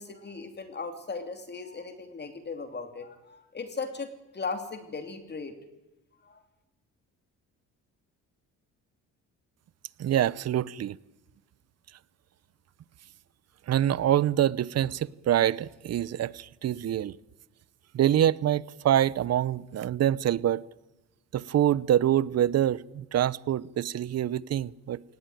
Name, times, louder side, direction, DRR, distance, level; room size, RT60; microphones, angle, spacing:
voice 1, 0.0-5.5 6.2-6.4, left 4 dB, 35° left, 2.7 m, -37 dB
voice 2, 10.0-11.0 13.7-17.1 17.9-20.6 21.3-25.0, right 11 dB, 55° right, 0.7 m, -25 dB
20.5 x 19.0 x 9.3 m
cardioid pair, 90°, 30 cm